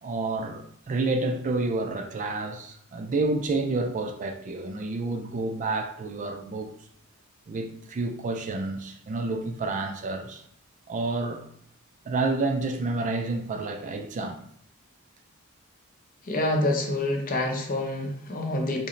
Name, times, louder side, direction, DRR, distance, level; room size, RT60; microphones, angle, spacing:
voice 1, 0.0-6.7 7.5-10.4 10.9-11.4 12.1-14.4, right 3 dB, 35° right, 0.3 m, -29 dB
voice 2, 16.2-18.9, left 1 dB, 40° left, 0.7 m, -27 dB
4.8 x 2.1 x 3.1 m
head